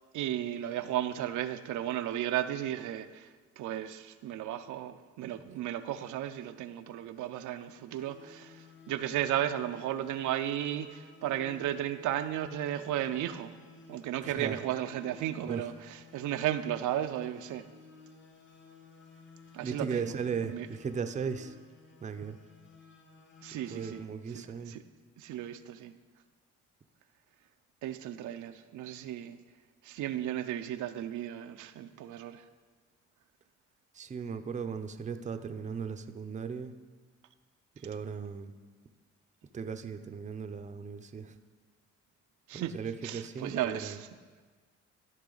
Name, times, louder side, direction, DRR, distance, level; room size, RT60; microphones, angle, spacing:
voice 1, 0.1-13.5 13.9-17.7 19.5-20.1 20.4-20.7 23.4-24.0 24.3-24.8 25.2-25.9 27.8-29.4 29.8-32.4 42.5-42.7 43.0-44.1, right 11 dB, 80° right, 0.5 m, -34 dB
sound 1, 7.9-24.1, left 4 dB, 40° left, 1.1 m, -55 dB
voice 2, 14.2-14.6 15.5-15.7 19.6-21.5 22.0-22.4 23.7-24.8 33.9-36.7 37.8-38.5 39.5-41.3 42.5-44.0, right 6 dB, 25° right, 0.5 m, -37 dB
13.5 x 5.6 x 3.9 m
cardioid pair, 90°, 30 cm